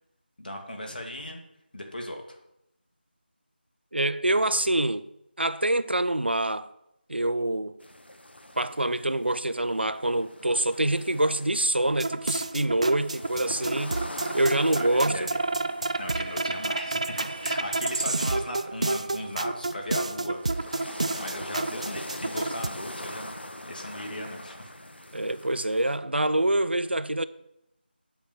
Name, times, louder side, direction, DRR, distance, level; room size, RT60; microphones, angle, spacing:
voice 1, 0.4-1.4 1.7-2.4 14.7-15.3 16.0-20.8 21.2-23.3 23.6-24.7, left 1 dB, 55° left, 2.2 m, -37 dB
voice 2, 3.9-5.0 5.4-6.7 7.1-7.7 8.6-14.0 14.3-15.3 25.1-27.2, right 1 dB, 75° right, 0.7 m, -25 dB
sound 1, 7.8-26.0, left 1 dB, 70° left, 1.2 m, -44 dB
sound 2, 11.9-22.7, right 2 dB, 35° right, 0.4 m, -30 dB
sound 3, 13.6-16.5, left 2 dB, 25° left, 1.4 m, -50 dB
8.6 x 5.8 x 7.4 m
figure-of-eight pair, 165°, 6 cm